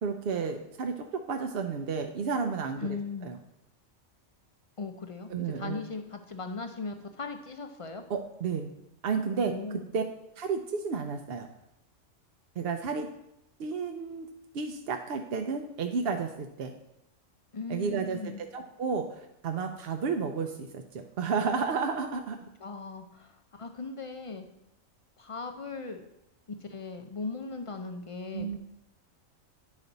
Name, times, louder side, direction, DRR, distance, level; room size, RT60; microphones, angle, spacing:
voice 1, 0.0-3.4 5.3-5.8 8.1-8.7 9.0-9.5 9.9-10.0 10.4-11.5 12.6-13.1 13.6-14.3 14.5-16.7 17.7-22.4 28.3-28.6, right 5 dB, 60° right, 4 dB, 0.7 m, -32 dB
voice 2, 2.8-3.3 4.8-8.0 9.5-9.9 17.5-18.4 22.6-24.5 25.2-26.0 26.6-28.6, left 4 dB, 45° left, 5 dB, 0.4 m, -38 dB
9.8 x 5.2 x 4.0 m, 0.82 s
omnidirectional pair, 1.4 m